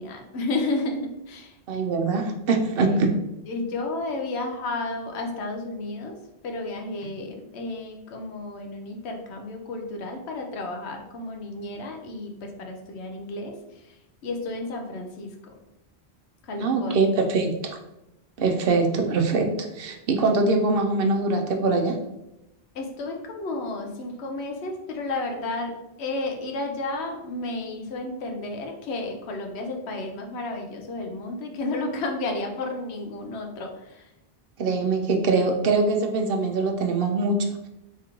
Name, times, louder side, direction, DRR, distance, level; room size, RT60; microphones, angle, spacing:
voice 1, 0.0-1.5 2.9-3.0 3.5-6.2 6.4-15.5 16.4-17.0 22.7-34.1, left 2 dB, 85° left, 3 dB, 1.0 m, -32 dB
voice 2, 1.7-3.1 16.6-17.8 18.4-22.0 34.6-37.7, right 3 dB, 65° right, 4 dB, 0.7 m, -23 dB
3.6 x 3.3 x 3.0 m, 0.89 s
omnidirectional pair, 1.1 m